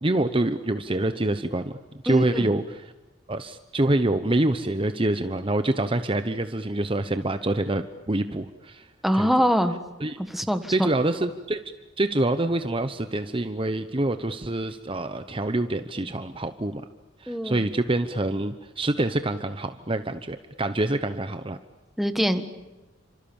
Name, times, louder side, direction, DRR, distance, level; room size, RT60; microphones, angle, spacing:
voice 1, 0.0-1.7 2.0-2.9 3.3-8.9 9.2-9.3 10.0-10.2 10.7-11.6 12.0-16.9 17.2-21.6, right 1 dB, 25° right, 9 dB, 0.9 m, -26 dB
voice 2, 2.1-2.5 9.0-9.8 10.2-10.9 17.3-17.6 22.0-22.4, equal, ahead, 8 dB, 1.6 m, -23 dB
29.5 x 26.5 x 7.2 m, 1.1 s
head